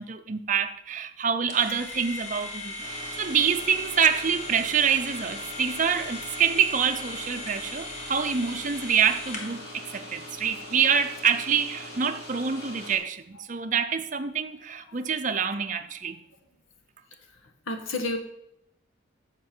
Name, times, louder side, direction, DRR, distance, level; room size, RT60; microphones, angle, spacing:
voice 1, 0.0-2.8 3.2-16.2, right 7 dB, 40° right, 0.5 m, -26 dB
sound 1, 1.5-9.7, left 2 dB, 35° left, 1.5 m, -38 dB
sound 2, 2.8-13.0, left 1 dB, 50° left, 3.3 m, -42 dB
voice 2, 17.7-18.2, left 2 dB, 75° left, 1.3 m, -31 dB
10.5 x 6.7 x 4.4 m
head